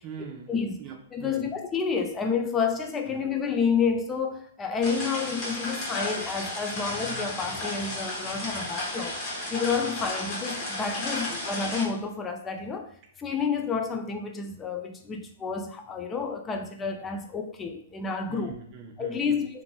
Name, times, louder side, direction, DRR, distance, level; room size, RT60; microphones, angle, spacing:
voice 1, 0.0-1.6 3.1-3.3 9.8-10.0 18.3-19.4, right 6 dB, 35° right, 0.5 m, -43 dB
voice 2, 1.1-9.2 9.5-12.9 13.2-18.6 19.0-19.6, left 5 dB, 20° left, 0.3 m, -29 dB
sound 1, 4.8-11.9, left 2 dB, 35° left, 0.8 m, -33 dB
2.8 x 2.6 x 2.2 m
hypercardioid pair, 125°, 0 cm